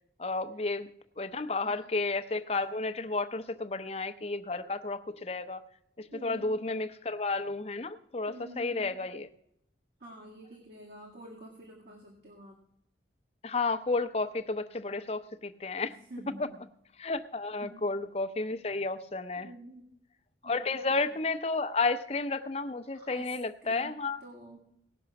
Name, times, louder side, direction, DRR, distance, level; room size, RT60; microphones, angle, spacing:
voice 1, 0.2-0.9 1.2-5.6 6.0-9.3 13.4-15.9 17.0-19.5 20.4-24.2, left 3 dB, 35° left, 10 dB, 0.7 m, -32 dB
voice 2, 6.1-6.5 8.3-9.0 10.0-12.6 15.8-16.6 17.6-17.9 19.4-19.8 20.4-21.1 22.9-23.3 23.6-24.6, right 1 dB, 65° right, -3 dB, 2.1 m, -48 dB
18.0 x 6.2 x 5.9 m, 0.77 s
head